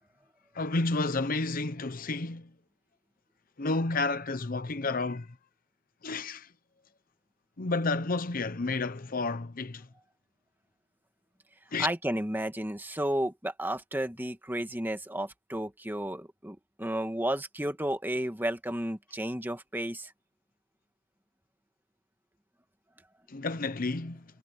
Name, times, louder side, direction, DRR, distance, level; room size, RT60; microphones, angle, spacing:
voice 1, 0.5-2.5 3.6-5.3 6.0-6.5 7.6-9.9 11.7-11.9 23.3-24.2, left 3 dB, 45° left, 0.8 m, -31 dB
voice 2, 11.8-20.1, right 1 dB, 10° right, 1.9 m, -32 dB
head